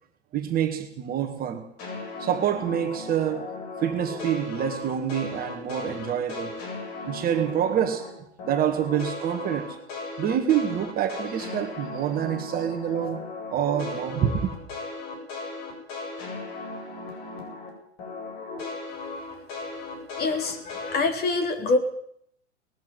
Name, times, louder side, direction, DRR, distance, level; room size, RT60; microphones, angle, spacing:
voice 1, 0.3-1.7 2.2-3.5 3.8-6.6 7.1-8.1 8.4-9.8 10.2-13.2 13.5-14.5, right 9 dB, 25° right, 2.0 m, -26 dB
sound 1, 1.8-8.1 8.4-17.7 18.0-21.0, left 3 dB, 45° left, 8.0 m, -37 dB
voice 2, 20.2-21.8, left 3 dB, 25° left, 3.7 m, -25 dB
20.0 x 14.0 x 9.5 m
figure-of-eight pair, 100°, 35 cm